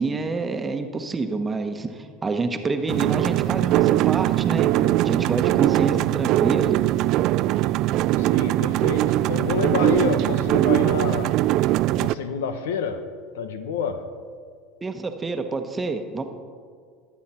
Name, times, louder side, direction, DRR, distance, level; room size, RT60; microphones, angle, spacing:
voice 1, 0.0-4.7 5.0-6.8 14.8-16.2, right 3 dB, 20° right, 1.1 m, -27 dB
sound 1, 2.9-12.1, right 15 dB, 60° right, 0.3 m, -21 dB
voice 2, 8.2-11.4 12.0-13.1 13.3-14.1, left 6 dB, 85° left, 0.8 m, -28 dB
21.0 x 8.3 x 4.4 m
hypercardioid pair, 90°, 0 cm